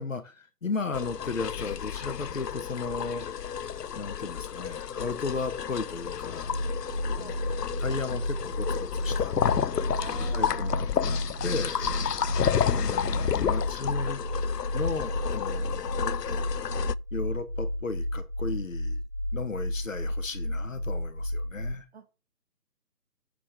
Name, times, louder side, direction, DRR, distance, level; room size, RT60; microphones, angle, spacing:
voice 1, 0.0-3.2 4.0-6.5 7.2-9.4 10.3-11.9 12.7-14.2 14.7-16.5 17.1-19.0 19.3-21.9, left 4 dB, 55° left, 1.9 m, -35 dB
sound 1, 0.9-16.9, left 8 dB, 90° left, 0.6 m, -31 dB
sound 2, 6.4-21.7, left 1 dB, 75° right, 5.3 m, -32 dB
voice 2, 9.9-11.2 21.9-22.0, right 5 dB, 40° right, 2.0 m, -45 dB
8.5 x 6.2 x 7.1 m
figure-of-eight pair, 155°, 47 cm